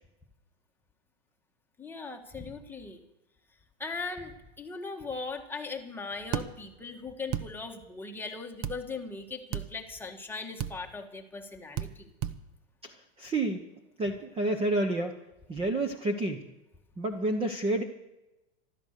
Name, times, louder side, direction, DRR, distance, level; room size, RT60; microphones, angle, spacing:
voice 1, 1.8-3.0 3.8-12.1, left 4 dB, 5° left, 1 dB, 1.6 m, -39 dB
sound 1, 6.3-6.5 7.3-7.5 8.6-8.8 9.5-9.7 10.6-10.7 11.8-11.9 12.2-12.4, right 10 dB, 35° right, 0.8 m, -32 dB
voice 2, 13.2-13.6 14.0-15.2 15.5-16.4 17.0-17.8, right 2 dB, 15° right, 6 dB, 1.1 m, -29 dB
14.5 x 12.5 x 6.6 m, 0.96 s
supercardioid pair, 140°, 35 cm